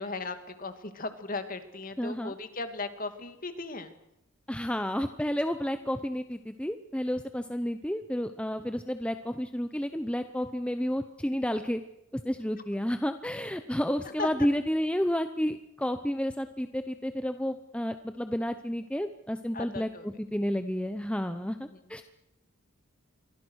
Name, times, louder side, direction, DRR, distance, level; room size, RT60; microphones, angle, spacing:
voice 1, 0.0-3.9 14.0-14.3 19.5-20.1 21.6-21.8, left 3 dB, 40° left, 8 dB, 2.3 m, -37 dB
voice 2, 2.0-2.3 4.5-11.8 12.1-19.9 20.2-22.0, equal, 5° left, 8 dB, 0.8 m, -31 dB
28.0 x 23.5 x 6.4 m, 0.83 s
head